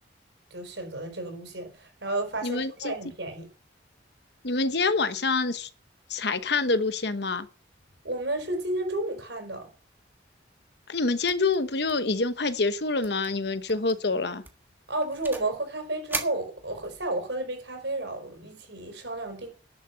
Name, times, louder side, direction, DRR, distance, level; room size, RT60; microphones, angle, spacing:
voice 1, 0.5-3.5 8.0-9.7 14.9-19.5, right 2 dB, 70° right, 4.8 m, -32 dB
voice 2, 2.4-2.9 4.4-5.7 6.1-7.5 10.9-14.4, left 3 dB, 60° left, 1.0 m, -26 dB
sound 1, 11.3-11.6 11.9-12.1 12.4-12.5 13.0-13.3 13.7-13.9 14.4-15.6 16.1-17.1, right 3 dB, 10° right, 1.5 m, -37 dB
11.0 x 7.5 x 6.9 m
head